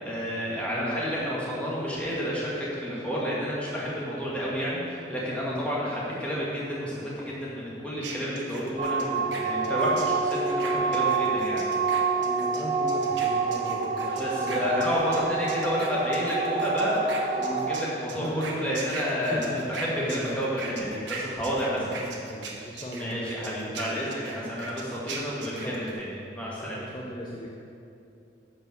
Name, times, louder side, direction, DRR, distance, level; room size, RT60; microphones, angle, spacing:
voice 1, 0.0-11.6 14.2-17.0 17.3-21.9 23.0-26.9, equal, 5° left, -7 dB, 1.9 m, -30 dB
sound 1, 8.0-15.2 15.5-25.9, right 4 dB, 75° right, 1.2 m, -39 dB
sound 2, 8.8-17.8, right 4 dB, 35° right, 0.6 m, -27 dB
voice 2, 12.2-14.8 18.1-20.4 21.7-24.1 24.9-25.9 26.8-27.5, equal, 25° left, -3 dB, 0.7 m, -38 dB
10.0 x 4.4 x 6.8 m, 2.7 s
head